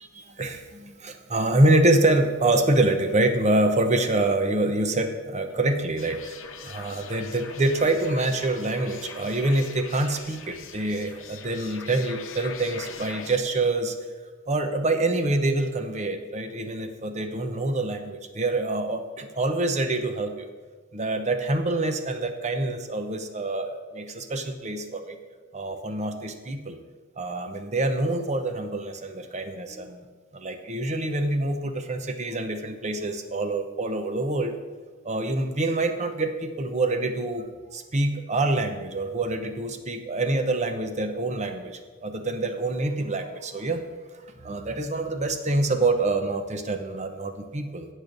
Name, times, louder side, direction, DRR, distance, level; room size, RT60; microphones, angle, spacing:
voice 1, 0.3-13.9 14.5-20.5 20.9-25.2 25.5-26.8 27.2-30.0 30.3-34.6 35.0-43.8 44.4-47.9, right 2 dB, 35° right, 7 dB, 0.8 m, -26 dB
sound 1, 6.0-13.4, left 6 dB, 70° left, 0.8 m, -42 dB
19.5 x 6.5 x 2.6 m, 1.4 s
head